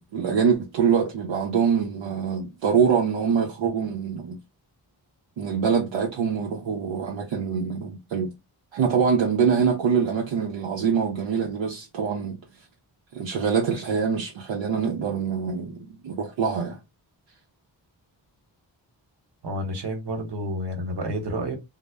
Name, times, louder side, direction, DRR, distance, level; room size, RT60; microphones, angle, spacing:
voice 1, 0.0-4.4 5.4-8.3 8.7-12.4 13.1-16.8, right 6 dB, 80° right, 0.7 m, -24 dB
voice 2, 19.4-21.6, equal, 60° right, 1.1 m, -30 dB
2.1 x 2.0 x 3.4 m
cardioid pair, 45°, 45 cm